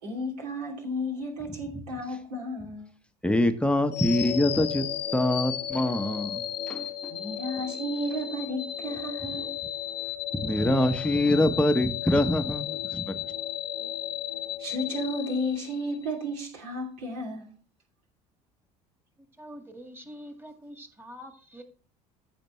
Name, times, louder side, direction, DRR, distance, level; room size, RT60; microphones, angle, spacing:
voice 1, 0.0-2.9 7.1-9.5 14.6-17.5, equal, 70° right, 2.8 m, -33 dB
voice 2, 3.2-4.9 5.1-6.9 10.3-13.1, left 1 dB, 5° left, 0.9 m, -24 dB
sound 1, 3.9-16.0, left 10 dB, 80° left, 0.8 m, -34 dB
voice 3, 19.4-21.6, equal, 10° right, 1.8 m, -45 dB
14.0 x 5.2 x 3.1 m
figure-of-eight pair, 60°, 21 cm